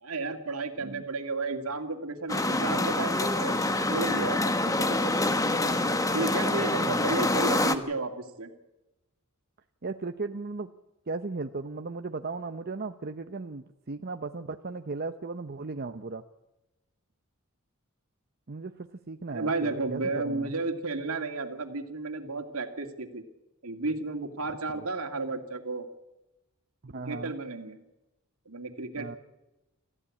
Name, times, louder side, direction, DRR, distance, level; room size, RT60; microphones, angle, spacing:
voice 1, 0.0-3.5 3.9-5.1 6.1-8.5 19.3-23.2 23.6-25.9 26.9-27.8 28.5-29.2, right 3 dB, 75° right, 6 dB, 2.5 m, -33 dB
sound 1, 2.3-7.8, left 2 dB, 15° left, 1.2 m, -26 dB
voice 2, 9.8-10.7 11.1-16.2 18.5-20.5 24.7-24.8 26.8-27.3 29.0-29.2, right 3 dB, 45° right, 7 dB, 0.8 m, -36 dB
26.5 x 14.5 x 8.5 m, 0.98 s
head